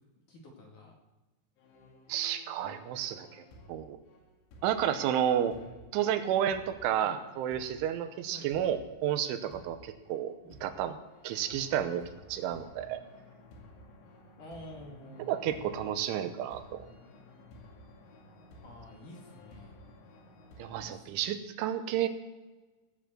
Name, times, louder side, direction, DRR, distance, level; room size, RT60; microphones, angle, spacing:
voice 1, 0.3-0.9 5.4-6.0 7.0-7.2 8.3-8.5 10.4-10.7 14.4-16.0 18.6-19.8 20.8-21.4, left 1 dB, 50° left, -1 dB, 3.2 m, -50 dB
sound 1, 1.6-20.9, left 1 dB, 80° left, 4.6 m, -54 dB
voice 2, 2.1-3.3 3.7-4.0 4.6-5.6 5.9-11.0 11.2-12.0 12.3-13.0 15.3-16.9 20.6-22.1, right 10 dB, 85° right, 9 dB, 3.4 m, -31 dB
17.5 x 7.1 x 7.7 m, 1.2 s
omnidirectional pair, 5.5 m